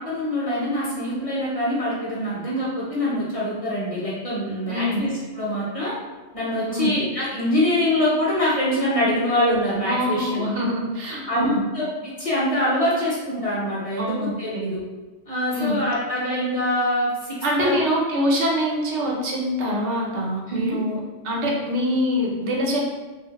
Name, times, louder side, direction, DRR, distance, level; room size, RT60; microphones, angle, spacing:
voice 1, 0.0-5.9 6.3-10.5 11.3-14.8 15.3-17.8 20.5-20.8, left 1 dB, 35° left, -8 dB, 0.7 m, -24 dB
voice 2, 4.7-5.0 6.7-6.9 9.8-11.6 14.0-14.7 15.5-15.7 17.4-22.8, equal, 80° right, -2 dB, 1.0 m, -24 dB
3.1 x 2.4 x 2.8 m, 1.2 s
omnidirectional pair, 1.2 m